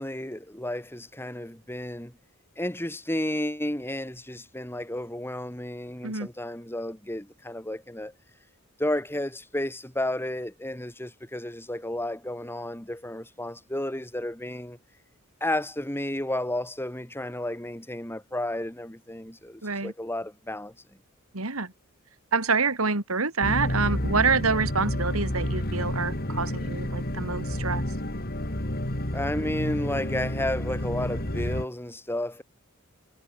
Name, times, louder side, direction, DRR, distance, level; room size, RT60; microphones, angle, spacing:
voice 1, 0.0-2.1 2.6-8.1 8.8-14.8 15.4-20.7 29.1-32.4, left 1 dB, 10° left, 4.7 m, -32 dB
voice 2, 19.6-19.9 21.3-21.7 22.3-27.8, right 4 dB, 85° right, 3.1 m, -27 dB
sound 1, 23.4-31.7, left 1 dB, 45° left, 4.0 m, -30 dB
head